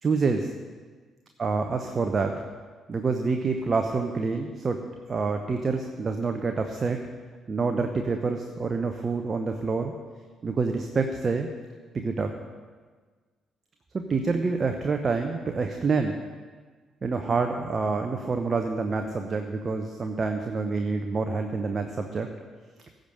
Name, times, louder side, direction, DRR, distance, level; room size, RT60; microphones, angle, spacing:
voice 1, 0.0-0.5 1.4-2.3 2.9-4.8 5.1-7.0 7.5-9.9 10.4-11.5 11.9-12.3 13.9-16.2 17.0-22.3, right 4 dB, 40° right, 5 dB, 0.9 m, -27 dB
15.0 x 5.3 x 7.8 m, 1.5 s
figure-of-eight pair, 45°, 0 cm